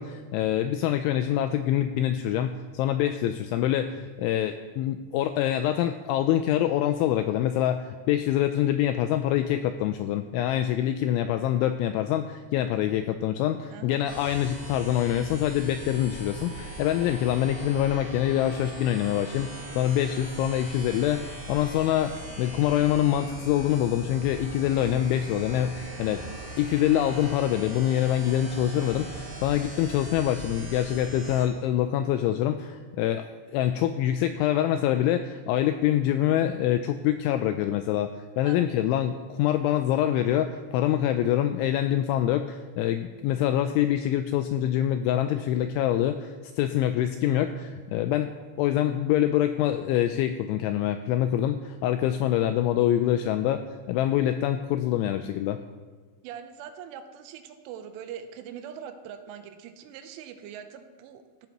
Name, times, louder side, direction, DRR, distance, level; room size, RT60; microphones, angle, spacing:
voice 1, 0.0-19.5 19.8-26.2 26.6-33.3 33.5-38.1 38.4-48.3 48.6-55.6, left 11 dB, 85° left, 8 dB, 2.7 m, -25 dB
voice 2, 13.7-14.0 38.4-38.6 56.2-61.5, right 8 dB, 80° right, 8 dB, 3.2 m, -42 dB
sound 1, 14.1-31.5, right 1 dB, 10° right, 3.7 m, -40 dB
16.5 x 13.5 x 3.0 m, 1.4 s
omnidirectional pair, 5.8 m